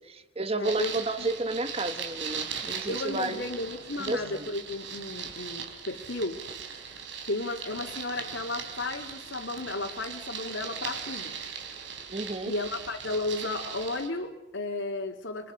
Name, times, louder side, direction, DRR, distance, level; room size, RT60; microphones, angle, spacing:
voice 1, 0.0-3.4 4.0-4.5 12.1-12.5, right 2 dB, 30° right, 10 dB, 1.2 m, -32 dB
voice 2, 0.5-1.3 2.9-6.4 7.3-11.4 12.5-15.5, left 2 dB, 70° left, 0 dB, 2.3 m, -34 dB
sound 1, 0.6-14.1, right 6 dB, 65° right, 4.4 m, -39 dB
30.0 x 25.0 x 5.7 m, 0.97 s
head